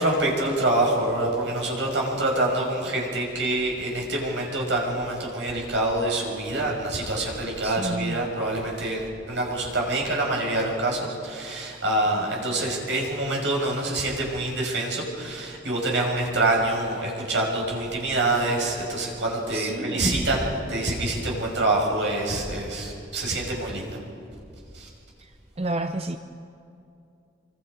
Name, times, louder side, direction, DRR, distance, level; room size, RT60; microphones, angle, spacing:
voice 1, 0.0-24.0 24.7-24.9, right 2 dB, 80° right, 0 dB, 6.0 m, -26 dB
voice 2, 7.6-8.2 19.5-20.2 25.6-26.2, right 2 dB, 35° right, 7 dB, 0.6 m, -30 dB
28.0 x 24.5 x 5.1 m, 2.6 s
head